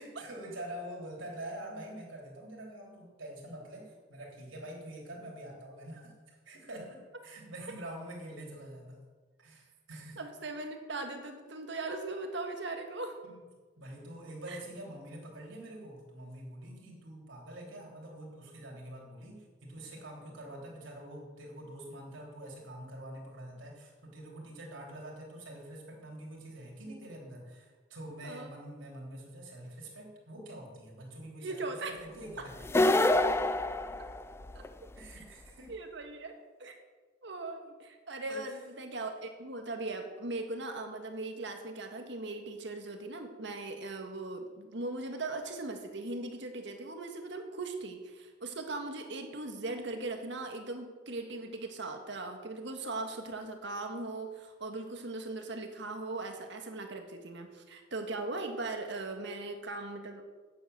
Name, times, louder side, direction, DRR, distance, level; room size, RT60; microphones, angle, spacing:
voice 1, 0.0-9.0 9.4-10.2 13.2-13.4 13.8-32.5 35.0-35.7 38.3-38.4, right 1 dB, 80° right, -1 dB, 3.4 m, -46 dB
voice 2, 10.2-13.2 14.5-14.6 28.2-28.5 31.4-31.9 34.5-34.6 35.7-36.3 36.6-36.8 37.2-60.2, right 2 dB, 65° right, 5 dB, 1.7 m, -39 dB
sound 1, 32.6-34.7, left 2 dB, 15° left, 0.4 m, -26 dB
9.5 x 7.9 x 7.9 m, 1.4 s
head